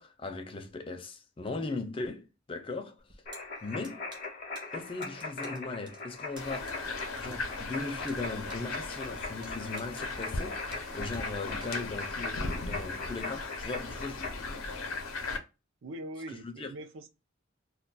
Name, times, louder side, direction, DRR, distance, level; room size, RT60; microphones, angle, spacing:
voice 1, 0.0-3.0 3.6-4.1 4.7-6.8 7.2-14.6 16.3-16.7, left 3 dB, 25° left, 0.3 m, -38 dB
sound 1, 3.0-12.2, right 3 dB, 20° right, 0.6 m, -54 dB
sound 2, 3.3-14.3, left 3 dB, 40° left, 0.7 m, -41 dB
sound 3, 6.4-15.4, left 3 dB, 85° left, 0.6 m, -38 dB
voice 2, 15.8-17.1, right 1 dB, 65° right, 0.4 m, -42 dB
2.3 x 2.2 x 3.7 m
head